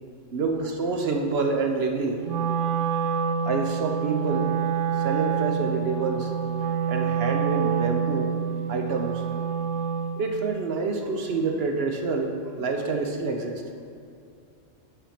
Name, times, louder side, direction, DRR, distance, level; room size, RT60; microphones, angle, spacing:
voice 1, 0.3-2.2 3.4-4.5 4.9-6.3 6.9-8.4 8.7-9.3 10.2-13.6, right 4 dB, 60° right, 3 dB, 0.9 m, -27 dB
Wind instrument woodwind instrument, 2.2-10.3, right 7 dB, 90° right, 0.9 m, -27 dB
9.8 x 3.5 x 5.7 m, 2.4 s
omnidirectional pair, 1.2 m